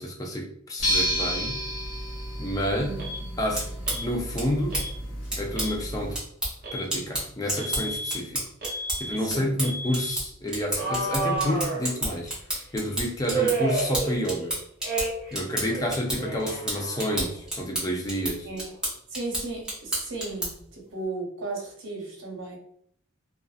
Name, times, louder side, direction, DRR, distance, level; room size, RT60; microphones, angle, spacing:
voice 1, 0.0-1.6 2.4-2.9 3.4-4.8 5.4-6.2 6.7-8.4 9.0-12.3 12.7-14.5 15.3-18.5, equal, 15° left, 0 dB, 0.4 m, -29 dB
sound 1, 0.8-6.2, equal, 70° left, 0.9 m, -31 dB
Alarm, 3.0-3.2 3.9-4.1 4.7-4.9 5.4-5.8 6.6-6.9 7.6-8.2 8.6-9.2 9.6-10.1 10.7-12.3 13.3-14.5 14.8-15.4 15.6-17.3, right 3 dB, 45° right, 0.7 m, -31 dB
sound 2, 3.6-20.7, right 1 dB, 5° right, 0.8 m, -33 dB
voice 2, 18.5-18.8 19.1-22.6, right 3 dB, 80° right, -1 dB, 0.8 m, -35 dB
2.5 x 2.3 x 2.3 m, 0.63 s
head